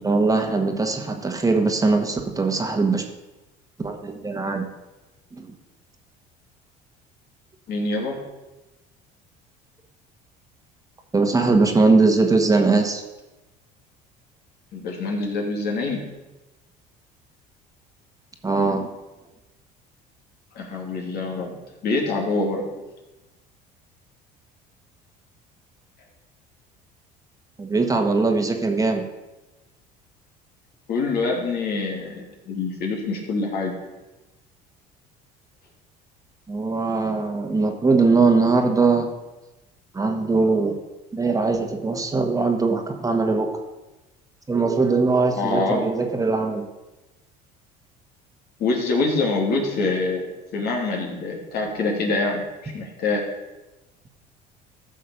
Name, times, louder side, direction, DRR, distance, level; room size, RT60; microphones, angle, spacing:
voice 1, 0.0-3.0 3.8-4.6 5.3-5.5 11.1-13.0 18.4-18.9 27.6-29.0 36.5-39.1 39.9-40.8 41.1-43.6 44.5-46.6, right 3 dB, 20° right, 4 dB, 1.5 m, -21 dB
voice 2, 7.7-8.2 14.7-16.1 20.5-22.7 30.9-33.7 45.4-45.9 48.6-53.3, left 3 dB, 60° left, 0 dB, 3.0 m, -25 dB
14.0 x 6.4 x 5.3 m, 1.1 s
supercardioid pair, 90°, 18 cm